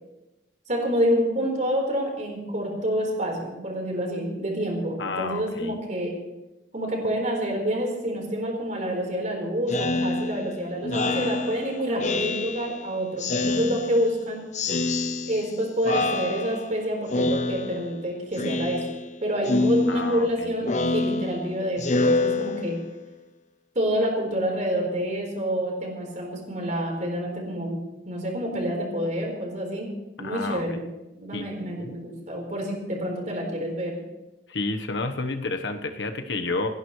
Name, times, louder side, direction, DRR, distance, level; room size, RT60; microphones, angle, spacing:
voice 1, 0.7-6.1 6.7-14.4 15.2-18.9 19.2-22.8 23.7-27.8 28.0-29.9 30.2-30.8 31.1-34.0, equal, 45° right, 0 dB, 4.2 m, -28 dB
voice 2, 5.0-5.7 19.9-20.5 30.2-30.8 31.3-31.5 31.8-31.9 34.5-36.7, left 3 dB, 85° left, 6 dB, 1.2 m, -30 dB
Speech synthesizer, 9.7-12.8 13.2-14.2 14.5-15.6 15.8-16.8 17.1-18.0 18.3-19.1 19.4-23.0, left 2 dB, 40° left, 0.9 m, -27 dB
28.5 x 11.0 x 3.2 m, 1.0 s
head